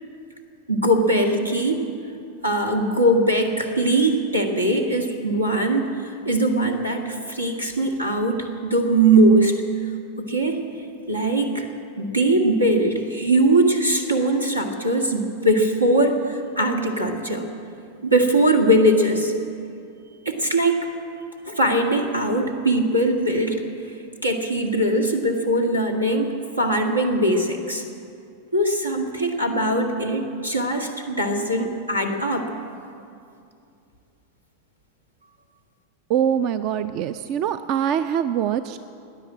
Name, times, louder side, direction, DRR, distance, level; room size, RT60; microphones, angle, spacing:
voice 1, 0.7-1.8 2.4-9.5 10.2-10.6 11.1-11.7 12.0-17.4 18.0-19.3 20.2-20.8 21.4-23.6 24.2-27.8 28.5-32.5, right 1 dB, 85° right, 3 dB, 1.7 m, -21 dB
voice 2, 36.1-38.8, right 9 dB, 40° right, 13 dB, 0.4 m, -23 dB
17.0 x 10.5 x 7.6 m, 2.5 s
figure-of-eight pair, 90°, 0 cm